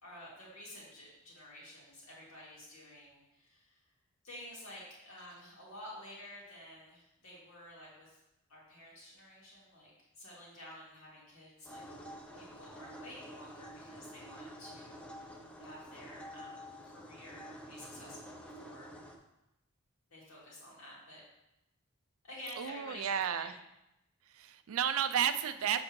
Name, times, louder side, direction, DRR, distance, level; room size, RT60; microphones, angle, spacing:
voice 1, 0.0-3.8 4.2-8.2 8.5-11.8 12.3-15.3 15.6-19.0 20.1-21.2 22.2-23.5, left 1 dB, 75° left, -5 dB, 2.5 m, -51 dB
sound 1, 11.6-19.2, equal, 5° left, 0.6 m, -49 dB
voice 2, 22.6-23.5 24.3-25.8, right 8 dB, 75° right, 10 dB, 0.4 m, -32 dB
7.2 x 5.3 x 3.1 m, 0.90 s
head